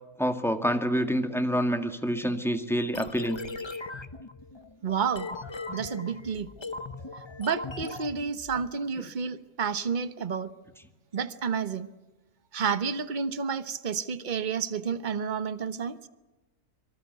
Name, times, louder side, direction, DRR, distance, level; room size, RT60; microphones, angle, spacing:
voice 1, 0.2-3.4, equal, ahead, 7 dB, 1.8 m, -27 dB
sound 1, 2.9-8.7, left 3 dB, 20° left, 0.9 m, -39 dB
voice 2, 4.8-5.3 5.7-6.5 7.4-10.5 11.1-11.9 12.5-16.0, right 6 dB, 35° right, 13 dB, 1.1 m, -30 dB
25.0 x 24.0 x 8.1 m, 1.1 s
omnidirectional pair, 1.6 m